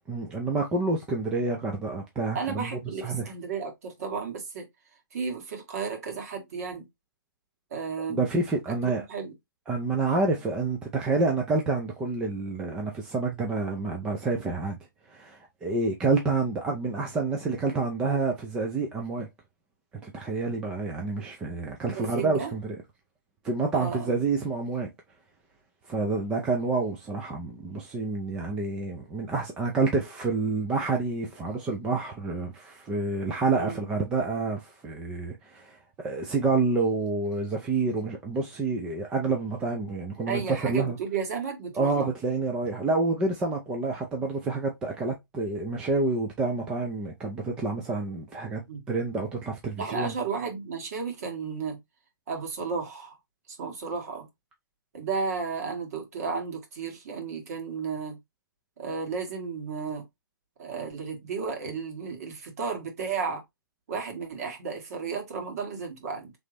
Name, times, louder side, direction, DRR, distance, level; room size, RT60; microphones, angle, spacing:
voice 1, 0.1-2.7 3.0-3.3 8.1-9.0 9.7-14.8 15.1-19.3 20.0-22.8 23.4-24.9 25.9-41.0 41.8-48.6 48.9-50.1, right 3 dB, 5° right, 0.3 m, -28 dB
voice 2, 2.3-4.6 5.1-6.8 7.7-8.2 9.1-9.3 21.9-22.5 23.7-24.2 33.6-33.8 40.3-42.1 48.7-48.8 49.8-51.8 52.3-53.1 53.5-54.3 54.9-58.2 58.8-60.0 60.6-63.4 63.9-66.3, right 5 dB, 45° right, 1.8 m, -33 dB
3.9 x 3.2 x 3.3 m
hypercardioid pair, 160°, 12 cm